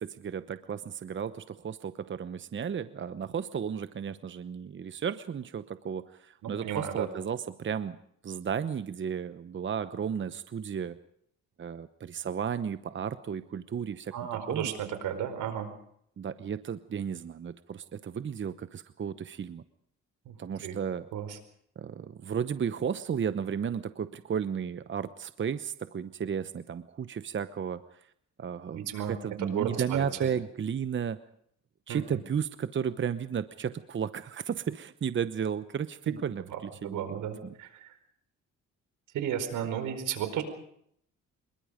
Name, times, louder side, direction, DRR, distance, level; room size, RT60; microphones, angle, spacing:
voice 1, 0.0-8.0 8.2-11.0 11.6-14.1 14.5-14.7 16.2-19.6 20.4-21.1 21.8-27.8 28.4-31.2 31.9-37.5, right 7 dB, 40° right, 12 dB, 1.0 m, -34 dB
voice 2, 6.4-7.1 14.1-15.7 20.3-20.4 20.6-20.8 21.1-21.4 28.7-30.3 31.9-32.0 36.1-36.2 36.5-37.9 39.1-40.4, right 9 dB, 85° right, 9 dB, 4.7 m, -34 dB
26.0 x 22.0 x 5.1 m, 0.69 s
cardioid pair, 90°, 30 cm